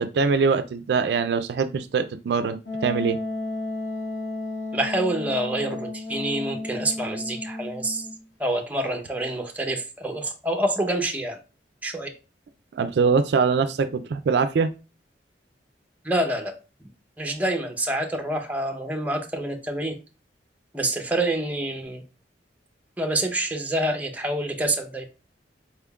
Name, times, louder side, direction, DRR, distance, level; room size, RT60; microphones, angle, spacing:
voice 1, 0.0-2.6 2.8-3.2 12.7-14.7, right 5 dB, 65° right, 0.3 m, -23 dB
Wind instrument woodwind instrument, 2.6-8.2, left 2 dB, 85° left, 1.4 m, -33 dB
voice 2, 4.7-8.0 8.4-11.4 11.8-12.1 16.0-16.5 17.2-19.9 20.7-22.0 23.0-25.0, right 1 dB, 10° right, 0.6 m, -27 dB
4.4 x 3.5 x 2.3 m
head